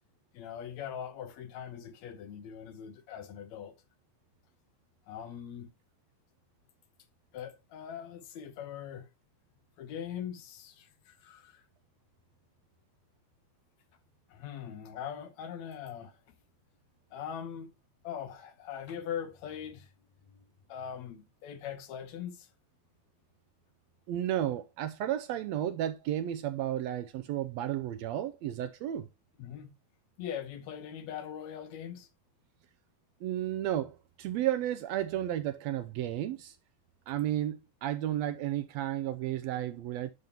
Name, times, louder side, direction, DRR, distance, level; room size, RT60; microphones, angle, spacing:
voice 1, 0.3-3.7 5.1-5.7 7.3-9.1 9.8-11.6 14.3-16.1 17.1-17.7 18.0-19.9 20.3-20.4 20.7-22.5 29.4-29.7 30.2-32.1, left 8 dB, 75° left, 2.2 m, -41 dB
voice 2, 24.1-29.1 33.2-36.6 37.1-40.1, right 12 dB, 80° right, 1.6 m, -33 dB
11.0 x 5.3 x 2.8 m
omnidirectional pair, 3.4 m